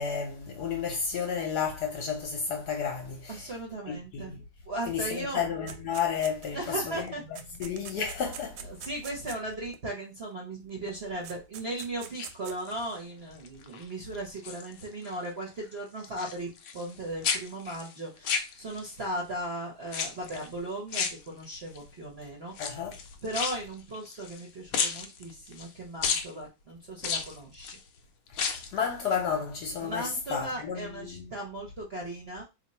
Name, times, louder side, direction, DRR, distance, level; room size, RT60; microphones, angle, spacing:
voice 1, 0.0-3.5 3.9-4.4 4.9-7.1 7.6-8.6 22.6-23.0 28.3-31.3, left 6 dB, 65° left, 1.1 m, -32 dB
voice 2, 3.3-5.4 6.5-7.2 8.6-22.7 23.2-27.8 29.8-32.4, right 1 dB, 45° right, 0.8 m, -37 dB
sound 1, 5.7-6.7 7.1-9.8 10.9-11.0 11.2-12.6, right 8 dB, 85° right, 1.4 m, -44 dB
sound 2, 12.0-13.0 13.4-13.8 14.1-15.2 15.4-17.0 17.2-19.0 19.9-20.5 20.9-21.8 22.5-24.4 24.7-25.7 26.0-26.3 27.0-27.8 28.3-28.8 29.1-29.2, left 6 dB, 85° left, 0.7 m, -33 dB
2.9 x 2.6 x 4.1 m
omnidirectional pair, 2.2 m